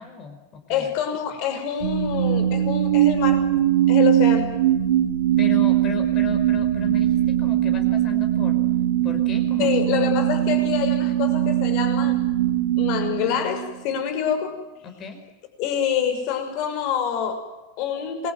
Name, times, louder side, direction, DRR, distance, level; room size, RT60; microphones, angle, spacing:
voice 1, 0.0-0.9 5.4-7.1 7.4-8.6 9.0-10.1 14.8-15.2, left 5 dB, 25° left, 5.2 m, -35 dB
voice 2, 0.7-3.5 3.9-4.5 9.6-12.2 12.8-14.6 15.6-18.3, left 8 dB, 45° left, 6.2 m, -26 dB
sound 1, 1.8-14.0, right 12 dB, 70° right, 3.2 m, -21 dB
27.5 x 22.5 x 9.4 m
supercardioid pair, 160°, 0 cm